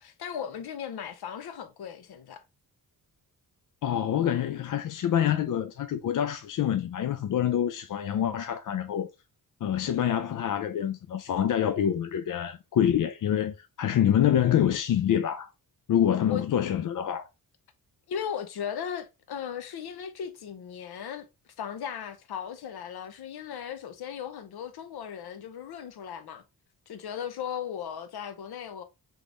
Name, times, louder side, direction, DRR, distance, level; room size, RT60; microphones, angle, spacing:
voice 1, 0.0-2.4 16.3-16.4 18.1-21.3 21.6-26.4 26.9-28.8, left 8 dB, 80° left, 0.8 m, -37 dB
voice 2, 3.8-9.1 9.6-15.5 15.9-17.3, left 10 dB, 55° left, 0.5 m, -26 dB
3.5 x 3.2 x 3.7 m
cardioid pair, 100°, 38 cm